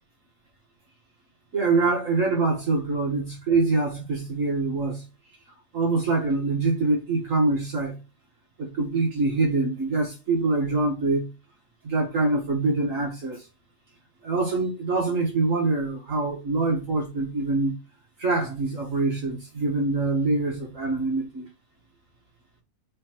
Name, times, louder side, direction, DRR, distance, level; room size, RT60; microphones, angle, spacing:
voice 1, 1.5-5.0 5.7-8.0 8.6-11.3 11.8-13.5 14.2-17.8 18.2-21.5, right 3 dB, 60° right, 2.0 m, -24 dB
4.6 x 4.3 x 5.8 m
omnidirectional pair, 1.6 m